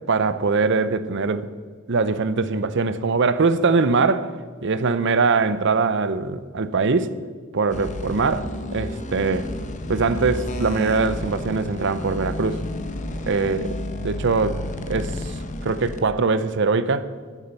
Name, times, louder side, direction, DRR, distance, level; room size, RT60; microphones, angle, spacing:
voice 1, 0.1-1.5 1.9-4.3 4.6-7.1 7.5-9.5 9.9-12.6 13.3-13.7 14.0-15.2 15.6-17.1, right 4 dB, 60° right, 0.7 m, -22 dB
sound 1, 7.7-16.0, left 1 dB, 35° left, 0.9 m, -31 dB
13.5 x 9.9 x 5.5 m
head